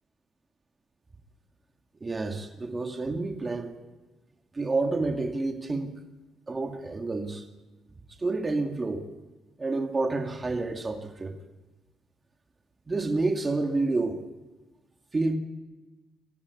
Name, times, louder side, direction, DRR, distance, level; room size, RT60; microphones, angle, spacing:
voice 1, 2.0-3.8 4.5-5.9 6.5-7.4 8.2-9.1 9.6-11.3 12.9-14.2 15.1-15.4, right 3 dB, 25° right, 4 dB, 2.2 m, -29 dB
23.0 x 14.5 x 8.4 m, 1.1 s
cardioid pair, 90°, 0 cm